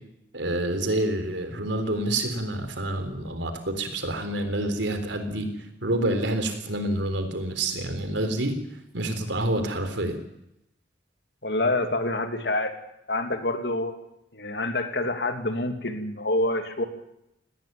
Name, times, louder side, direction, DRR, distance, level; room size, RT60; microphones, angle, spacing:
voice 1, 0.3-5.5 5.8-8.6 8.9-10.2, right 1 dB, 85° right, 8 dB, 3.8 m, -28 dB
voice 2, 11.4-12.7 13.1-13.9 14.3-16.8, left 2 dB, 65° left, 7 dB, 2.8 m, -27 dB
18.5 x 18.0 x 9.4 m, 0.84 s
head